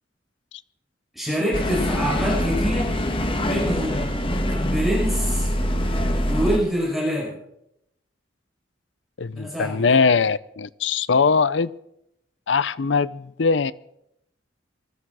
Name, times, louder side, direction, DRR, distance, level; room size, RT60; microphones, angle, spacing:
voice 1, 1.1-3.0 3.4-4.1 4.5-5.5 6.2-7.3 9.3-10.0, equal, ahead, -6 dB, 6.2 m, -26 dB
sound 1, 1.5-6.6, left 1 dB, 30° left, 1.5 m, -24 dB
voice 2, 9.2-11.7 12.5-13.7, left 5 dB, 80° left, 17 dB, 0.6 m, -21 dB
21.0 x 13.0 x 4.9 m, 0.79 s
head